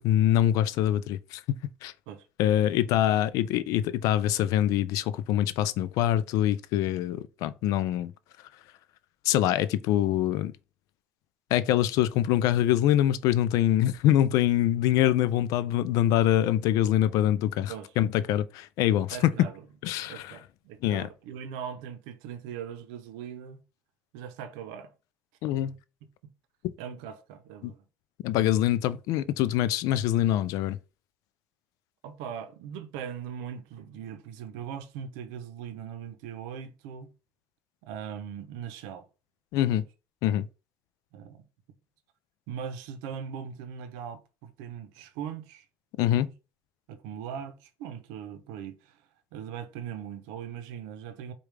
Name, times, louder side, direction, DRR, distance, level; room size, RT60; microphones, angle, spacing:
voice 1, 0.0-1.9 2.4-8.1 9.2-10.5 11.5-19.3 19.8-20.4 20.8-21.1 25.4-25.8 26.6-26.7 27.6-27.7 28.2-30.8 39.5-39.8 40.2-40.5 46.0-46.3, left 12 dB, 70° left, 0.3 m, -24 dB
voice 2, 19.1-19.6 20.1-23.6 24.1-24.9 26.8-27.8 32.0-37.1 37.8-39.0 39.7-39.8 41.1-41.4 42.5-45.6 46.1-46.3 46.9-49.0 49.3-51.3, right 8 dB, 90° right, 0.7 m, -40 dB
4.8 x 2.3 x 3.2 m
cardioid pair, 110°, 6 cm